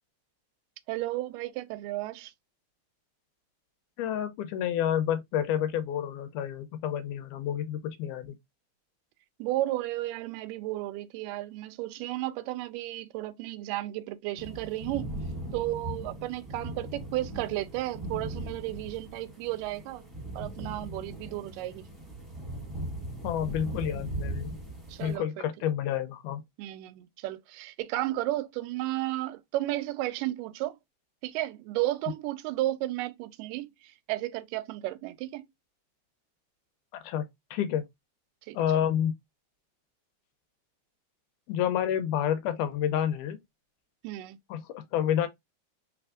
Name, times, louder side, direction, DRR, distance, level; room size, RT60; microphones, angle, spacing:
voice 1, 0.9-2.3 9.4-15.1 15.5-20.1 20.4-21.9 24.9-25.4 26.6-30.8 31.2-35.5 38.5-38.6 44.0-44.4, right 16 dB, 90° right, 2.2 m, -33 dB
voice 2, 4.0-8.3 23.2-24.6 25.0-26.4 37.0-37.2 37.5-37.8 38.5-39.2 41.5-43.4 44.5-45.3, left 10 dB, 80° left, 2.1 m, -29 dB
sound 1, 14.4-25.2, right 1 dB, ahead, 1.0 m, -39 dB
4.5 x 3.4 x 2.4 m
omnidirectional pair, 3.7 m